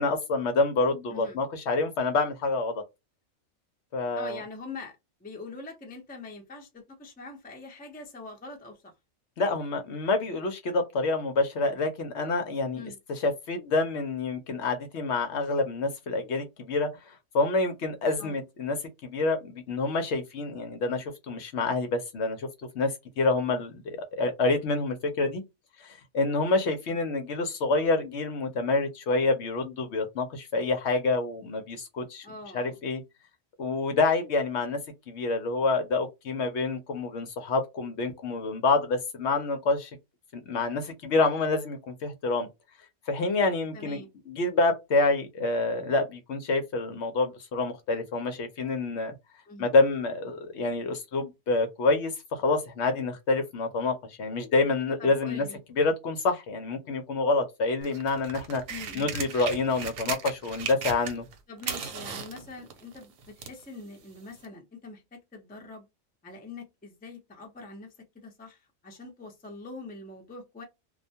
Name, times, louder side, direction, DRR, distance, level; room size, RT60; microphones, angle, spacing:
voice 1, 0.0-2.8 3.9-4.4 9.4-12.8 13.1-18.8 19.0-22.5 22.7-25.4 25.8-32.3 32.5-33.0 33.6-34.8 35.1-40.0 40.3-42.5 43.1-49.1 49.6-55.4 55.8-58.6 58.9-61.2, left 3 dB, 65° left, 0.8 m, -27 dB
voice 2, 1.1-1.4 4.2-8.9 12.7-13.0 18.2-18.4 26.6-26.7 32.2-32.8 43.7-44.1 49.5-49.7 55.0-55.6 58.7-59.1 61.5-65.9 66.2-70.6, left 3 dB, 10° left, 0.4 m, -44 dB
sound 1, 57.8-61.3 61.6-63.6 64.4-64.5, right 7 dB, 75° right, 1.0 m, -36 dB
2.3 x 2.2 x 2.6 m
omnidirectional pair, 1.4 m